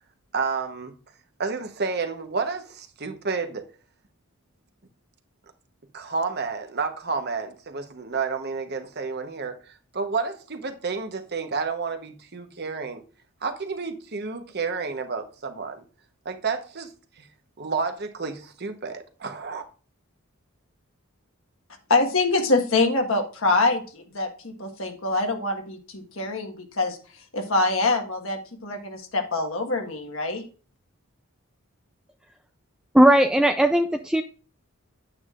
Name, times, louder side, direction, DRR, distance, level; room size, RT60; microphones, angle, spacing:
voice 1, 0.3-0.9 1.4-3.7 5.9-13.0 13.4-15.8 16.2-17.3 17.6-19.7, right 4 dB, 50° right, 1.0 m, -30 dB
voice 2, 21.9-27.0 27.3-30.4, left 2 dB, 65° left, 1.5 m, -25 dB
voice 3, 32.9-34.2, right 1 dB, 5° right, 0.3 m, -17 dB
9.2 x 8.8 x 2.5 m
head